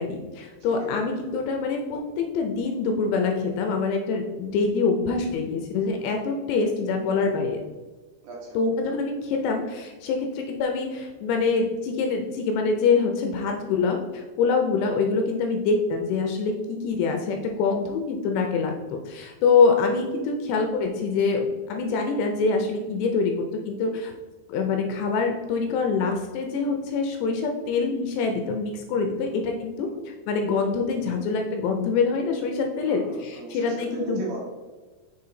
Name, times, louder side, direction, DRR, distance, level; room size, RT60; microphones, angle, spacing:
voice 1, 0.0-7.6 8.5-23.3 23.6-24.1 24.5-34.2, left 4 dB, 80° left, 3 dB, 2.6 m, -25 dB
voice 2, 0.7-1.2 8.2-8.6 14.7-15.0 19.6-19.8 29.2-29.4 29.8-30.0 32.8-34.5, right 2 dB, 80° right, -3 dB, 1.8 m, -37 dB
6.2 x 4.2 x 3.8 m, 1.3 s
omnidirectional pair, 5.2 m